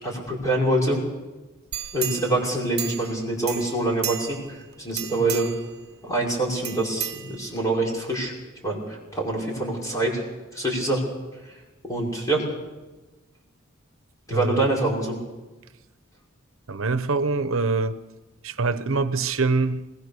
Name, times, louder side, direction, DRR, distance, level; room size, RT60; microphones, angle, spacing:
voice 1, 0.0-1.0 1.9-5.5 6.0-8.3 8.6-10.2 10.5-11.0 11.8-12.4 14.3-15.2, right 2 dB, 15° left, 5.7 m, -25 dB
sound 1, 1.7-3.2 3.5-4.5 4.9-5.7 6.6-7.8 8.2-8.3, right 11 dB, 55° right, 1.1 m, -33 dB
voice 2, 14.3-14.7 16.7-18.0 18.4-19.8, right 3 dB, 80° right, 0.9 m, -24 dB
21.5 x 20.0 x 6.8 m
head